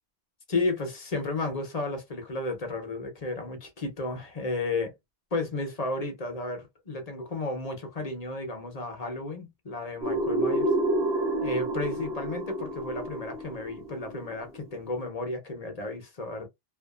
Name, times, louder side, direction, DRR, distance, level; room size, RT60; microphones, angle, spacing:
voice 1, 0.5-4.9 5.3-10.7 11.4-16.5, left 2 dB, 40° left, 0.8 m, -33 dB
sound 1, 10.0-14.7, right 1 dB, 75° right, 1.1 m, -29 dB
2.5 x 2.5 x 2.3 m
omnidirectional pair, 1.1 m